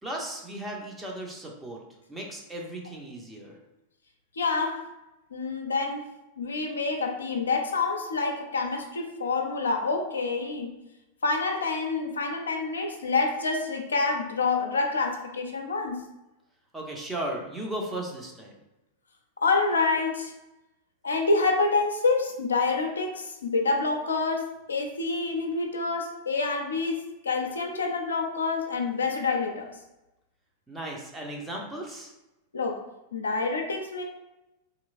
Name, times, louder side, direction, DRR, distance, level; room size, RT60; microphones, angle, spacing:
voice 1, 0.0-1.8 2.1-3.6 16.7-18.6 30.7-32.1, right 1 dB, 10° right, -1 dB, 0.7 m, -36 dB
voice 2, 4.4-4.9 5.3-6.1 6.4-10.7 11.2-16.0 19.4-20.3 21.0-29.7 32.5-32.8 33.1-34.0, left 3 dB, 70° left, 2 dB, 0.4 m, -27 dB
3.0 x 2.9 x 2.5 m, 0.96 s
figure-of-eight pair, 90°, 0 cm